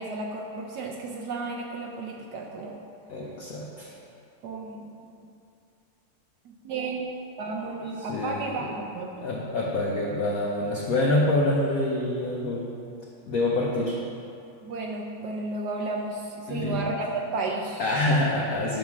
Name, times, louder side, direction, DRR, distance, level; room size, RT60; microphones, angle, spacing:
voice 1, 0.0-2.8 4.4-5.0 5.2-5.3 6.4-7.1 7.4-9.3 14.6-17.8, right 3 dB, 70° right, 0 dB, 1.0 m, -33 dB
voice 2, 3.1-3.9 8.1-8.5 9.2-12.7 13.3-14.0 16.5-16.9 17.8-18.8, left 1 dB, 60° left, -3 dB, 0.9 m, -26 dB
10.5 x 3.6 x 6.1 m, 2.6 s
omnidirectional pair, 2.4 m